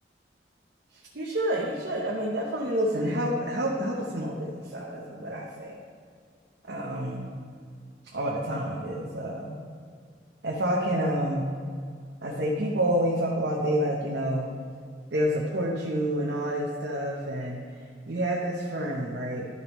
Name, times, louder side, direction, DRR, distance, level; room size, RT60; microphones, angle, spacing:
voice 1, 1.1-5.8 6.6-7.3 8.1-9.6 10.4-11.5 12.2-14.5 15.1-17.6 18.1-19.5, equal, 80° right, -3 dB, 0.9 m, -28 dB
11.5 x 6.6 x 3.1 m, 2.1 s
head